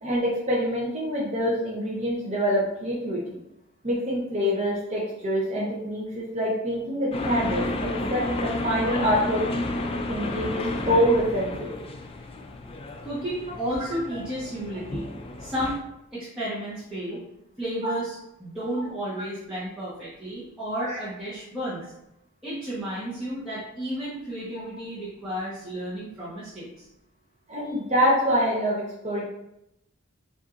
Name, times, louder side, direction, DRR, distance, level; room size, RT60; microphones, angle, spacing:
voice 1, 0.0-3.4 3.8-9.5 10.1-11.7 17.8-18.0 20.8-21.0 24.5-24.6 27.5-29.2, equal, 35° right, -4 dB, 0.8 m, -26 dB
sound 1, 7.1-15.8, left 2 dB, 30° left, 0.4 m, -32 dB
voice 2, 13.0-15.1 15.4-15.8 16.1-17.2 17.6-21.8 22.4-26.9 27.6-27.7, equal, 5° right, -12 dB, 1.1 m, -32 dB
7.2 x 2.7 x 2.5 m, 0.84 s
head